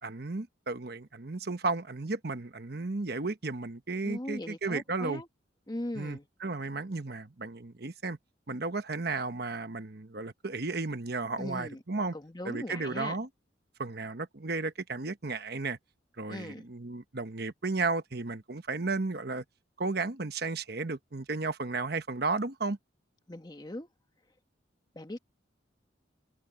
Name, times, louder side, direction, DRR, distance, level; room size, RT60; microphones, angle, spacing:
voice 1, 0.0-5.2 5.9-8.2 8.5-12.2 12.4-13.3 13.8-15.8 16.2-19.4 19.8-22.8, right 3 dB, 55° right, 1.1 m, -34 dB
voice 2, 4.0-5.3 5.7-6.3 11.4-11.8 12.1-13.2 16.3-16.7 23.3-23.9 24.9-25.2, left 1 dB, 20° left, 1.1 m, -39 dB
open air
head